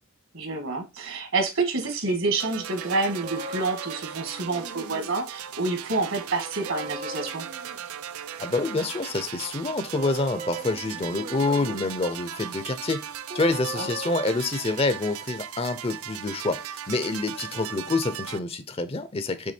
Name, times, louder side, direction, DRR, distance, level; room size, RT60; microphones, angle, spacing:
voice 1, 0.3-7.4 13.7-13.9, right 3 dB, 65° right, 1.8 m, -28 dB
sound 1, 2.4-18.4, right 9 dB, 90° right, 0.5 m, -38 dB
sound 2, 3.2-5.1 6.5-7.8 9.9-11.9 12.2-12.3 13.3-14.3, right 2 dB, 40° right, 0.7 m, -38 dB
voice 2, 8.4-13.0 13.3-19.5, left 3 dB, 25° left, 0.6 m, -27 dB
6.3 x 3.5 x 4.3 m
head